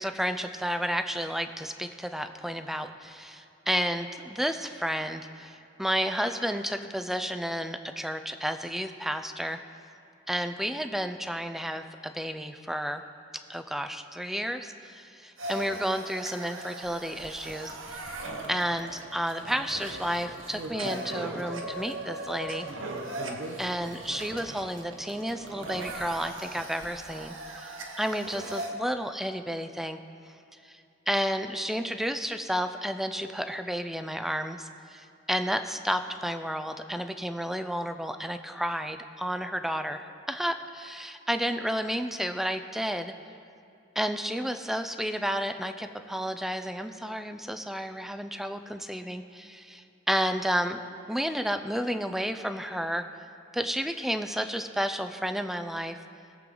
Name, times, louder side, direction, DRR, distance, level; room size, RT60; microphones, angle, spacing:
voice 1, 0.0-9.6 10.3-13.0 13.5-18.0 18.5-22.7 23.6-30.0 30.6-30.8 31.1-43.1 44.0-50.8 51.1-53.1 53.5-56.0, equal, ahead, 8 dB, 0.5 m, -31 dB
sound 1, 15.4-28.7, right 2 dB, 90° right, 1.3 m, -39 dB
20.5 x 7.8 x 3.9 m, 2.6 s
head